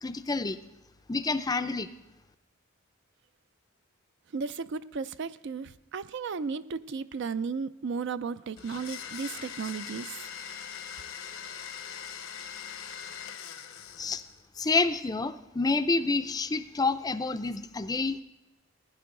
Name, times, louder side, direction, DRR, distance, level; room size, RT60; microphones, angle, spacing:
voice 1, 0.0-0.6 1.1-1.9 14.0-14.2 14.6-18.2, left 3 dB, 20° left, 11 dB, 0.5 m, -28 dB
voice 2, 4.3-10.3 10.6-10.7, right 5 dB, 55° right, 13 dB, 0.4 m, -35 dB
Domestic sounds home sounds, 8.6-14.4, left 8 dB, 75° left, 1.0 m, -41 dB
16.5 x 10.0 x 3.8 m, 1.0 s
head